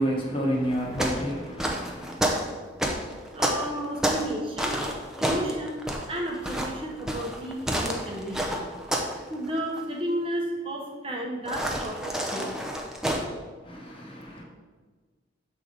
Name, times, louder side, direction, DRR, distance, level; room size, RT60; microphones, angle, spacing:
voice 1, 0.0-2.2 13.6-14.4, equal, 25° left, 1.1 m, -30 dB
sound 1, 0.7-4.3 4.6-9.2 9.4-9.8 11.5-13.3, right 1 dB, 5° right, 0.6 m, -29 dB
voice 2, 3.3-4.8 5.2-5.8 6.1-8.6 9.1-12.5, right 1 dB, 25° right, 0.9 m, -32 dB
7.5 x 4.1 x 5.1 m
head